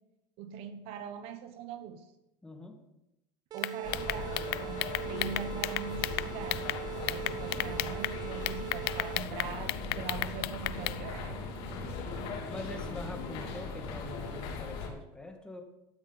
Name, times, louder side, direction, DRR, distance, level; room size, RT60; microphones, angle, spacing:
voice 1, 0.4-2.1 3.5-6.6 7.1-11.4, right 7 dB, 55° right, 10 dB, 1.0 m, -42 dB
voice 2, 2.4-2.8 12.5-15.6, left 2 dB, 5° left, 3 dB, 1.8 m, -44 dB
sound 1, 3.5-9.5, right 15 dB, 30° right, 0.6 m, -41 dB
sound 2, 3.6-6.8 7.1-8.1 8.5-11.0, left 18 dB, 90° left, 0.5 m, -33 dB
sound 3, 3.8-14.9, left 4 dB, 55° left, 3.3 m, -39 dB
13.0 x 13.0 x 4.0 m, 0.89 s
supercardioid pair, 145°, 12 cm